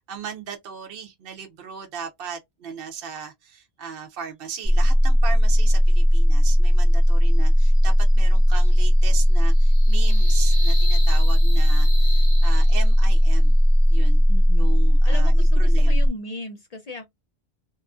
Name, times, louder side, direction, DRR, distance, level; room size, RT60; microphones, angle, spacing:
voice 1, 0.0-13.5 13.9-14.2 14.5-16.0, right 7 dB, 70° right, 0.7 m, -37 dB
sound 1, 4.6-16.1, equal, 5° left, 1.0 m, -16 dB
sound 2, 7.3-13.3, left 2 dB, 90° left, 1.4 m, -39 dB
voice 2, 14.3-17.1, left 2 dB, 50° left, 0.5 m, -37 dB
2.9 x 2.4 x 2.3 m
omnidirectional pair, 1.0 m